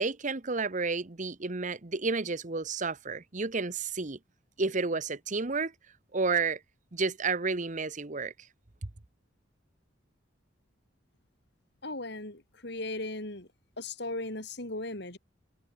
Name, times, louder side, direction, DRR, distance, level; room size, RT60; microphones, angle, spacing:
voice 1, 0.0-4.2 4.6-5.7 6.1-6.6 6.9-8.3, right 4 dB, 40° right, 1.1 m, -31 dB
voice 2, 11.8-13.5 13.8-15.2, left 2 dB, 60° left, 4.8 m, -37 dB
head